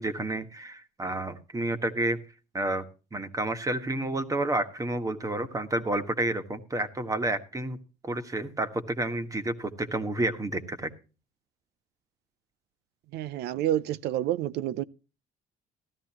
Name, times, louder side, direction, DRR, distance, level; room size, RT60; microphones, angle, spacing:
voice 1, 0.0-2.2 2.5-2.8 3.1-7.8 8.0-10.9, right 2 dB, 20° right, 1.5 m, -30 dB
voice 2, 13.1-14.8, right 12 dB, 80° right, 0.5 m, -29 dB
15.0 x 13.0 x 2.9 m
cardioid pair, 110°, 17 cm